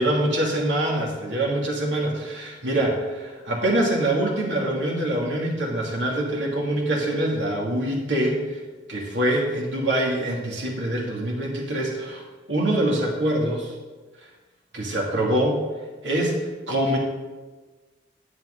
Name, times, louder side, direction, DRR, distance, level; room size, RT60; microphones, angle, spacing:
voice 1, 0.0-8.6 8.9-12.2 12.5-13.7 14.7-15.6 16.0-16.4 16.7-17.0, right 1 dB, 85° right, -2 dB, 2.6 m, -24 dB
11.0 x 9.1 x 3.9 m, 1.3 s
head